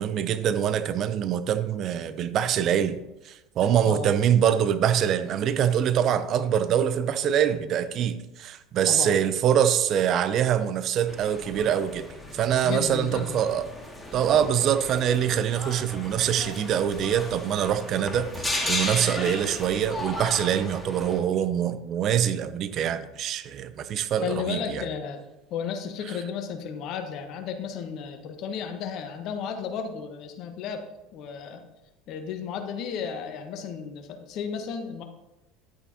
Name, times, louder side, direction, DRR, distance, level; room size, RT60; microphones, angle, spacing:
voice 1, 0.0-3.0 3.2-12.1 12.3-13.7 14.1-24.8, right 9 dB, 45° right, 12 dB, 0.6 m, -24 dB
voice 2, 8.8-9.2 12.6-13.4 24.2-25.2 25.5-30.8 31.1-31.6 32.1-35.0, left 6 dB, 50° left, 6 dB, 1.2 m, -33 dB
sound 1, 11.1-21.2, left 1 dB, 10° left, 2.1 m, -35 dB
10.5 x 8.6 x 2.8 m, 0.97 s
figure-of-eight pair, 70°, 0 cm